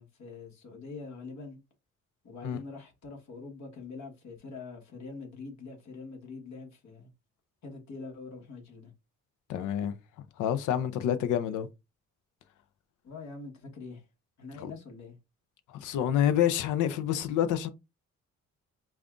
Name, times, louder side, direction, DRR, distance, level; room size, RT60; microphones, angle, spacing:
voice 1, 0.0-1.6 2.2-7.1 7.6-8.9 13.0-14.0 14.4-15.2, left 4 dB, 65° left, 1.5 m, -44 dB
voice 2, 9.5-10.0 10.4-11.7 14.6-14.7 15.7-17.7, left 10 dB, 85° left, 0.6 m, -28 dB
5.2 x 2.4 x 2.5 m
cardioid pair, 90°, 30 cm